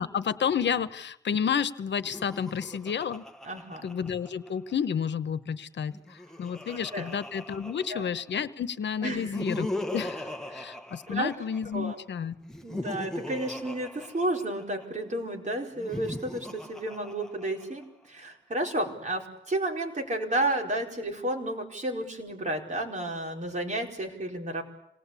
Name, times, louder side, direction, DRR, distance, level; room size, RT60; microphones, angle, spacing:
voice 1, 0.0-3.2 3.8-9.7 9.9-12.4, left 7 dB, 80° left, 13 dB, 1.1 m, -31 dB
Laughter, 2.0-4.7 5.8-8.4 9.1-11.8 12.4-14.8 15.7-17.8, left 1 dB, 5° left, 1.3 m, -39 dB
voice 2, 3.4-3.8 6.7-7.1 7.9-8.1 9.0-9.3 11.1-11.3 11.7-11.9 12.6-24.6, right 1 dB, 40° right, 1 dB, 4.7 m, -32 dB
26.5 x 19.5 x 8.4 m, 0.79 s
wide cardioid pair, 110°, 18 cm